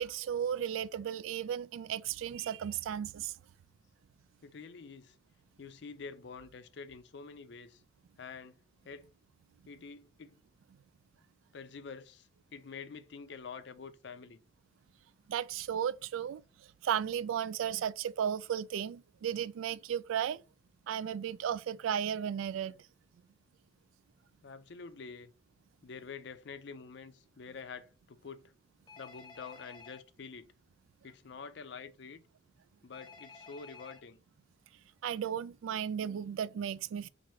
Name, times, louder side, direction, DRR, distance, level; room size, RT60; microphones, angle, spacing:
voice 1, 0.0-3.3 15.3-16.4 16.8-20.4 20.9-22.8 35.0-37.1, right 9 dB, 90° right, 0.3 m, -34 dB
voice 2, 4.4-5.2 5.6-7.8 8.2-8.6 8.8-9.1 9.7-10.4 11.5-14.4 24.4-25.3 25.8-28.5 29.0-30.5 31.0-32.2 32.8-34.2, left 5 dB, 60° left, 0.5 m, -47 dB
Telephone, 28.9-30.0 32.9-34.0, left 4 dB, 25° left, 0.9 m, -52 dB
4.3 x 2.6 x 4.7 m
head